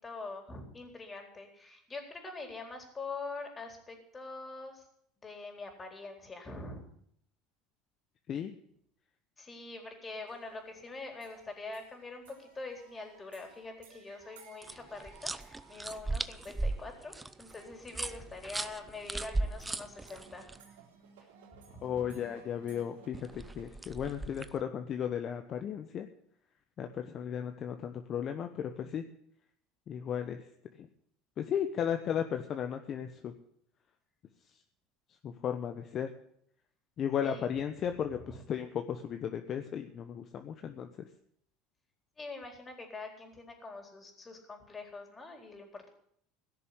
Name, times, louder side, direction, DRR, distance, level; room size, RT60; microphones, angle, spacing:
voice 1, 0.0-4.9 5.2-6.9 9.4-20.8 21.5-22.2 37.2-37.5 38.1-38.4 42.2-45.9, left 3 dB, 20° left, 4 dB, 4.0 m, -44 dB
sound 1, 10.3-23.7, right 6 dB, 90° right, 3.6 m, -59 dB
sound 2, 14.6-20.6 23.1-24.6, right 2 dB, 10° right, 0.8 m, -37 dB
voice 2, 21.8-26.1 26.8-29.0 29.9-30.4 30.8-30.9 31.4-33.3 35.2-36.1 37.0-41.1, left 8 dB, 45° left, 7 dB, 1.1 m, -35 dB
16.5 x 6.8 x 9.8 m, 0.68 s
supercardioid pair, 100°, 0 cm